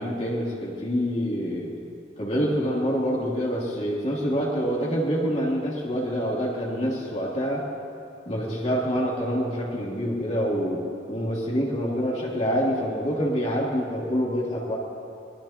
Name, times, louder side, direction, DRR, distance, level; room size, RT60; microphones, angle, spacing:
voice 1, 0.0-1.7 2.2-7.6 8.3-14.8, equal, 35° left, -4 dB, 2.9 m, -26 dB
23.5 x 20.5 x 2.9 m, 2.6 s
head